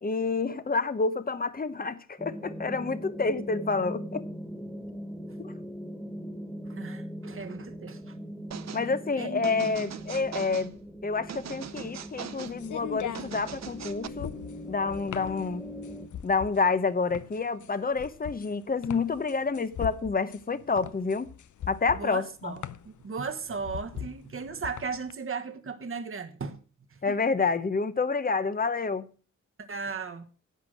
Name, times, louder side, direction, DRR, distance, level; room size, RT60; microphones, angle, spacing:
voice 1, 0.0-4.2 5.4-5.5 8.7-10.7 11.0-14.3 14.7-15.7 16.2-21.3 21.7-22.5 27.0-29.1, left 4 dB, 30° left, 0.9 m, -28 dB
sound 1, 2.2-16.1, equal, ahead, 1.8 m, -40 dB
voice 2, 6.7-8.1 9.2-9.4 21.9-26.6 26.9-27.2 29.7-30.3, right 5 dB, 45° right, 1.3 m, -36 dB
sound 2, 8.5-8.9 9.4-10.7 11.3-12.6 13.1-14.1, right 8 dB, 60° right, 0.7 m, -41 dB
sound 3, 11.2-25.1, left 10 dB, 70° left, 0.7 m, -41 dB
11.0 x 8.1 x 6.2 m
cardioid pair, 85°, 31 cm